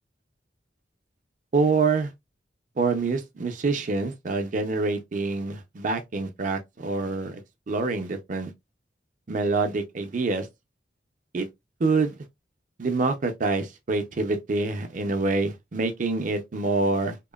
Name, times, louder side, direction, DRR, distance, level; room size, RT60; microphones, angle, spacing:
voice 1, 1.5-2.1 2.8-7.4 7.7-8.5 9.3-10.5 11.3-11.5 11.8-12.1 12.8-17.2, right 3 dB, 45° right, 0.5 m, -26 dB
2.9 x 2.1 x 2.2 m
head